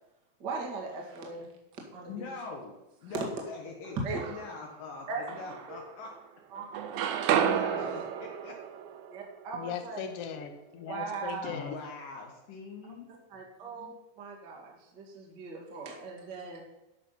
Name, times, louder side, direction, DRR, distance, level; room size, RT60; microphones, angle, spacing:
voice 1, 0.4-2.3 3.1-3.2 4.0-4.4 5.1-5.2 5.7-5.8 6.5-6.9 9.1-10.0 10.8-11.7 13.1-16.6, right 4 dB, 35° right, -1 dB, 1.9 m, -39 dB
voice 2, 2.1-2.7 3.0-4.0 4.3-6.1 7.4-8.6 11.4-13.1, left 4 dB, 70° left, 1 dB, 2.7 m, -42 dB
sound 1, 3.8-4.7 5.3-6.3 6.6-10.5, right 9 dB, 80° right, 1.6 m, -32 dB
voice 3, 9.5-11.8, left 7 dB, 90° left, 6 dB, 1.3 m, -39 dB
13.0 x 5.9 x 5.7 m, 0.97 s
omnidirectional pair, 4.2 m